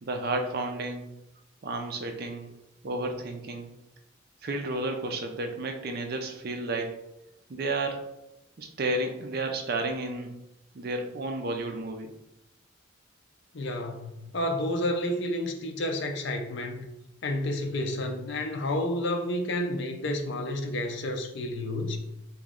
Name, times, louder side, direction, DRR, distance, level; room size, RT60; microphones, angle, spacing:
voice 1, 0.0-1.1 1.6-2.5 2.8-3.7 4.4-7.0 7.5-8.2 8.6-10.3 10.7-12.1, right 2 dB, 45° right, 0.4 m, -32 dB
voice 2, 13.5-16.8 17.2-22.0, left 1 dB, 55° left, 0.5 m, -30 dB
3.0 x 3.0 x 3.7 m
head